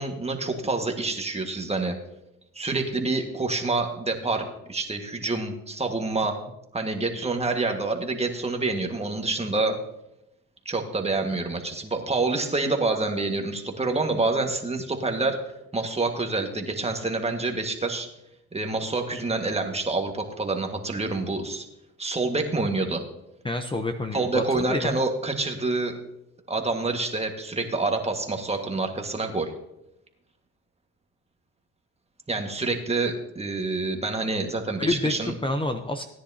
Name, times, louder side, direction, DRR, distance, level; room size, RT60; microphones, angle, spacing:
voice 1, 0.0-2.0 2.5-6.4 6.7-9.8 10.6-15.4 15.7-18.1 18.5-21.7 22.0-23.0 24.1-26.0 26.5-29.5 32.3-35.3, right 3 dB, 20° right, 3 dB, 1.7 m, -27 dB
voice 2, 23.4-24.4 24.7-24.9 34.8-35.1 35.4-36.0, left 2 dB, 15° left, 6 dB, 0.7 m, -27 dB
16.5 x 10.0 x 2.8 m, 0.86 s
cardioid pair, 90°, 30 cm